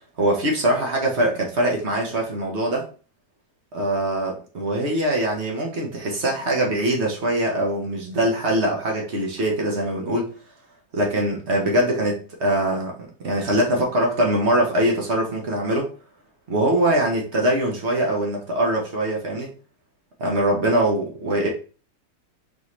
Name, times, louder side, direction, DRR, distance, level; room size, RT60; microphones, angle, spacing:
voice 1, 0.2-2.9 3.7-10.3 10.9-15.9 16.5-19.5 20.2-21.5, right 1 dB, 45° right, 1.2 m, -22 dB
4.1 x 3.6 x 3.0 m
omnidirectional pair, 1.9 m